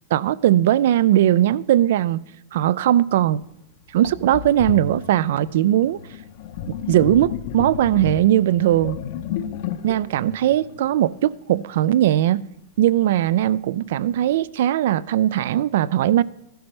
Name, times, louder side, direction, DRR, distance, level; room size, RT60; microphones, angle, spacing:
voice 1, 0.1-2.2 2.5-3.4 3.9-6.0 6.9-9.0 9.8-12.4 12.8-16.2, right 12 dB, 60° right, 0.3 m, -19 dB
Sink (filling or washing), 3.3-3.4 4.0-11.3, left 8 dB, 45° left, 0.6 m, -32 dB
13.5 x 12.5 x 3.2 m
supercardioid pair, 170°, 0 cm